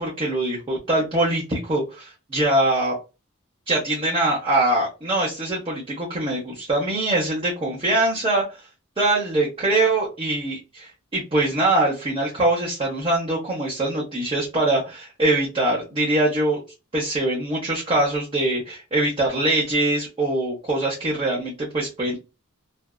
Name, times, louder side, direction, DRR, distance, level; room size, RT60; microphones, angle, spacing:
voice 1, 0.0-2.9 3.7-8.6 9.0-16.6 16.9-22.2, right 2 dB, 25° right, -5 dB, 0.8 m, -23 dB
2.6 x 2.3 x 2.3 m, 0.28 s
head